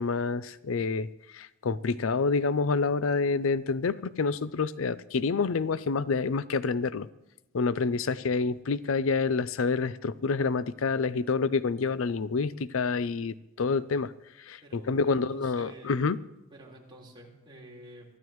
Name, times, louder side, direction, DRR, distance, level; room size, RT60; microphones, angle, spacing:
voice 1, 0.0-7.1 7.5-14.1 14.4-16.2, left 4 dB, 85° left, 16 dB, 0.5 m, -28 dB
voice 2, 14.6-16.1 16.5-18.1, right 1 dB, 25° right, -3 dB, 4.3 m, -49 dB
23.5 x 14.5 x 3.1 m, 0.97 s
head